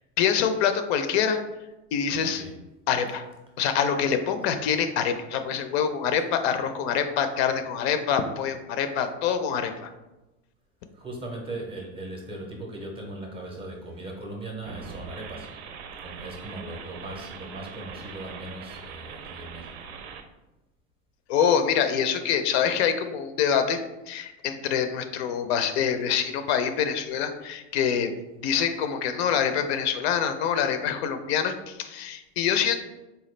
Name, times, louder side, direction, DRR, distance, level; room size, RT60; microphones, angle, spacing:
voice 1, 0.2-1.4 1.9-2.4 2.9-3.2 3.6-9.9 21.3-23.8 24.1-28.1 28.4-32.8, left 7 dB, 70° left, 8 dB, 0.5 m, -25 dB
voice 2, 10.9-15.5 16.0-19.8, right 1 dB, 15° right, 0 dB, 0.6 m, -38 dB
sound 1, 14.6-20.2, right 6 dB, 70° right, 0.5 m, -42 dB
4.1 x 2.2 x 3.1 m, 0.99 s
supercardioid pair, 140°, 34 cm